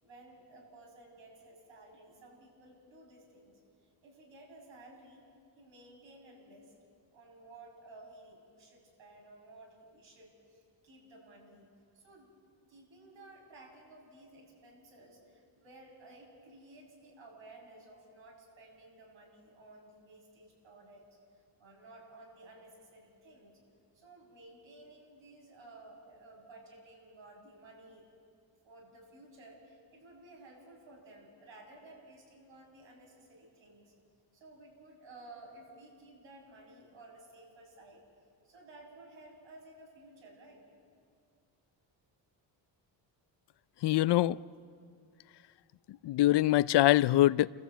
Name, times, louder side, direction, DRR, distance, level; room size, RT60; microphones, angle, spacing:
voice 1, 0.0-3.6 4.0-5.2 5.6-6.7 7.1-11.7 11.9-12.3 12.7-21.1 21.6-23.6 23.9-28.0 28.6-33.9 34.3-38.0 38.4-40.6, right 2 dB, 75° right, 6.7 m, -55 dB
voice 2, 43.8-44.4 46.0-47.5, left 15 dB, 65° left, 0.5 m, -24 dB
29.0 x 14.5 x 8.3 m
cardioid pair, 95°, 46 cm